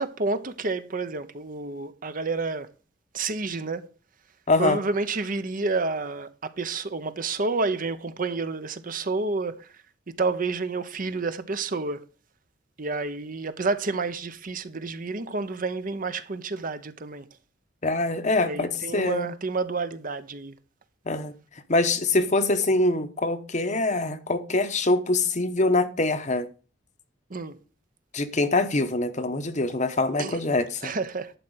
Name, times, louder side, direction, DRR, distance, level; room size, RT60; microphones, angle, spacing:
voice 1, 0.0-2.7 3.1-3.9 4.6-9.7 10.1-12.0 12.8-17.2 18.4-20.5 27.3-27.5 30.2-30.4 30.8-31.3, right 3 dB, 45° right, 0.8 m, -29 dB
voice 2, 4.5-4.8 17.8-19.3 21.1-21.3 21.7-26.5 28.1-30.9, left 2 dB, 40° left, 1.0 m, -24 dB
11.0 x 4.3 x 8.0 m
head